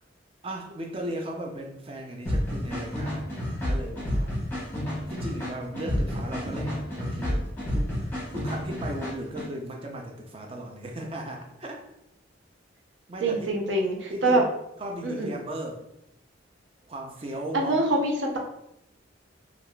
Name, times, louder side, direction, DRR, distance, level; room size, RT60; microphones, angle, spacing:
voice 1, 0.4-4.3 5.1-11.8 13.1-13.6 14.1-14.4 14.8-15.8 16.9-17.8, right 1 dB, 30° right, 2 dB, 0.4 m, -37 dB
sound 1, 2.3-9.5, left 1 dB, 10° left, 0.9 m, -30 dB
voice 2, 13.2-14.4 15.0-15.3 17.5-18.4, right 2 dB, 75° right, 1 dB, 0.6 m, -24 dB
3.4 x 2.4 x 2.2 m, 0.81 s
head